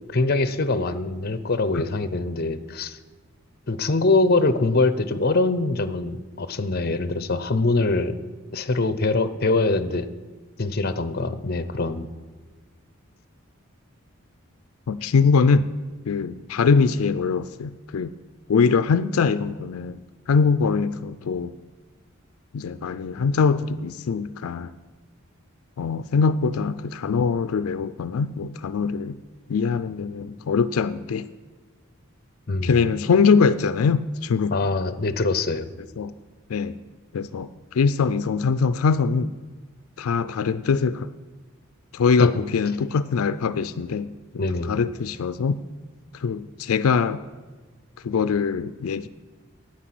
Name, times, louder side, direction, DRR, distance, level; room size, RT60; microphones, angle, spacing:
voice 1, 0.1-3.0 3.7-8.2 8.5-10.1 10.6-12.1 32.5-32.8 34.5-35.7 42.2-42.3 44.4-44.7, left 3 dB, 45° left, 13 dB, 0.7 m, -23 dB
voice 2, 14.9-15.7 16.1-18.1 18.5-20.0 20.3-21.5 22.5-24.7 25.8-29.2 29.5-31.3 32.6-34.6 36.0-36.1 36.5-36.8 37.1-39.3 40.0-41.1 41.9-45.6 46.1-47.2 48.0-49.1, left 5 dB, 80° left, 13 dB, 0.4 m, -22 dB
9.9 x 8.7 x 7.6 m, 1.4 s
head